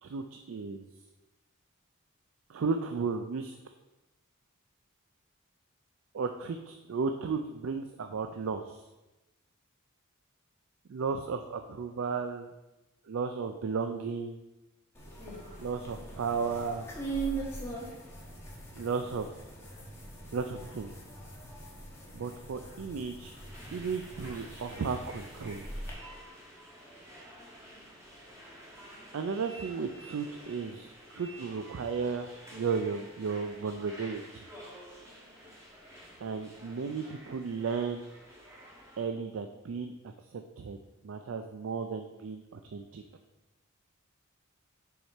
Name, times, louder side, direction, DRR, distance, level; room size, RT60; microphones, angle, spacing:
voice 1, 0.0-0.9 2.5-3.5 6.1-8.8 10.9-12.5 13.1-14.4 15.6-16.9 18.8-19.3 20.3-20.9 22.1-23.3 23.7-25.7 29.1-34.5 36.2-38.0 39.0-40.8 41.0-43.0, right 5 dB, 65° right, 7 dB, 0.4 m, -34 dB
sound 1, 14.9-25.9, right 3 dB, 10° left, 1.2 m, -41 dB
sound 2, 23.3-39.0, equal, 15° right, 1.4 m, -50 dB
6.4 x 4.8 x 4.1 m, 1.0 s
head